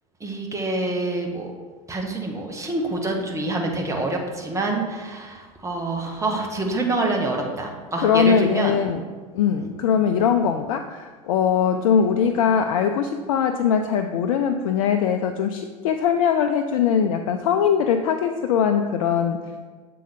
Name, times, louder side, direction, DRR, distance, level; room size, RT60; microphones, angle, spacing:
voice 1, 0.2-1.5 1.9-8.8 9.6-9.8, right 2 dB, 15° right, 1 dB, 1.4 m, -26 dB
voice 2, 8.0-9.0 9.3-19.4, left 7 dB, 70° left, 6 dB, 0.4 m, -21 dB
7.7 x 3.8 x 5.1 m, 1.4 s
hypercardioid pair, 80°, 18 cm